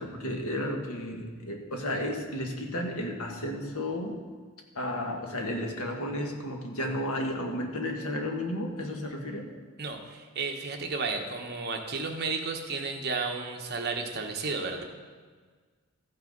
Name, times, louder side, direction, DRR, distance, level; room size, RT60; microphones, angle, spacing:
voice 1, 0.0-4.2 4.7-9.5, left 1 dB, 85° left, 2 dB, 1.5 m, -33 dB
voice 2, 9.8-14.8, right 4 dB, 50° right, 2 dB, 1.1 m, -33 dB
14.5 x 6.0 x 5.3 m, 1.5 s
head